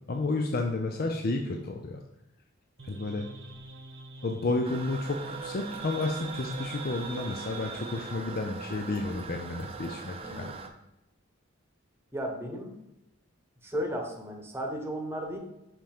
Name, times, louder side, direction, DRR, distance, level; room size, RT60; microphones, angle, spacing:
voice 1, 0.1-2.0 2.8-3.3 4.2-10.5, left 2 dB, 50° left, 3 dB, 0.5 m, -31 dB
sound 1, 2.8-8.2, right 3 dB, 65° right, 1.0 m, -45 dB
Toilet flush, 4.6-10.7, right 5 dB, 30° right, 0.6 m, -41 dB
voice 2, 10.2-10.6 12.1-12.7 13.6-15.4, equal, 10° right, 1 dB, 1.1 m, -34 dB
5.8 x 5.6 x 3.5 m, 0.90 s
head